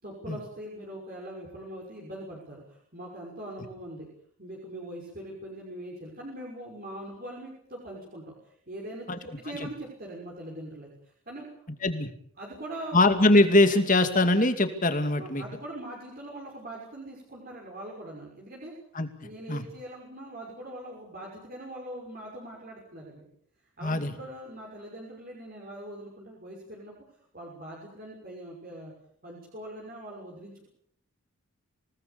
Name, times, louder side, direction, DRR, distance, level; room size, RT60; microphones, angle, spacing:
voice 1, 0.0-4.1 4.4-11.5 11.8-11.9 12.4-13.0 15.2-18.7 19.2-23.3 23.8-27.0 27.3-28.9 29.2-30.7, right 1 dB, 40° right, -3 dB, 6.1 m, -42 dB
voice 2, 12.9-15.4 18.9-19.1 19.5-19.6 23.8-24.1, left 2 dB, 35° left, 8 dB, 2.5 m, -22 dB
27.5 x 19.0 x 7.1 m, 0.65 s
head